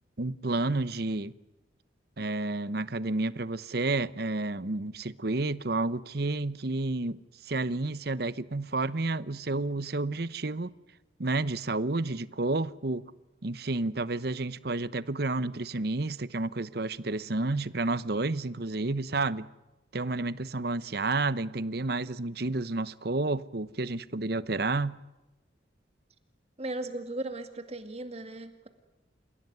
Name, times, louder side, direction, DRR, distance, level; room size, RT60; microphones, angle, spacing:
voice 1, 0.2-1.3 2.2-7.2 7.5-10.7 11.2-13.0 13.4-19.5 19.9-25.0, right 2 dB, 55° right, 0.9 m, -30 dB
voice 2, 26.6-28.7, right 2 dB, 35° right, 2.2 m, -37 dB
29.0 x 16.5 x 9.5 m
head